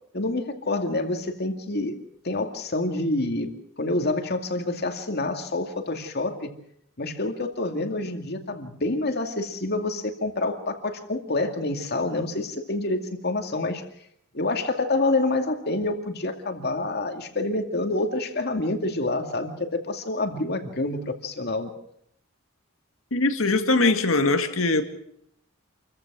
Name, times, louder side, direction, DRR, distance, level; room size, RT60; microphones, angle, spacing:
voice 1, 0.1-2.0 2.2-6.6 7.0-13.8 14.3-21.7, left 2 dB, 50° left, 5 dB, 2.4 m, -27 dB
voice 2, 23.1-24.8, left 3 dB, 80° left, 7 dB, 2.1 m, -21 dB
28.0 x 15.0 x 6.2 m, 0.72 s
head